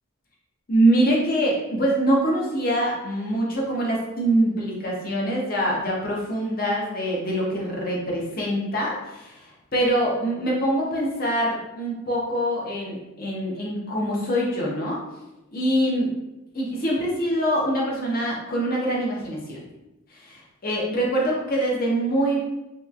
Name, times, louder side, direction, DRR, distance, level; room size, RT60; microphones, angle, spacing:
voice 1, 0.7-15.0 15.5-16.1 16.5-19.6 20.1-22.5, right 1 dB, 40° left, -3 dB, 0.7 m, -24 dB
3.0 x 2.9 x 2.3 m, 0.94 s
head